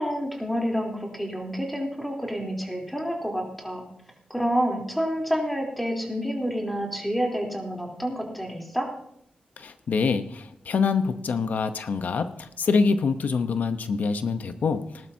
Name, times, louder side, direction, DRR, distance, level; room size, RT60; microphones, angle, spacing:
voice 1, 0.0-3.8 4.3-8.9, equal, ahead, -1 dB, 3.5 m, -28 dB
voice 2, 9.6-15.1, left 5 dB, 80° left, 9 dB, 1.0 m, -25 dB
19.5 x 12.0 x 2.8 m, 0.73 s
wide cardioid pair, 90°, 3 cm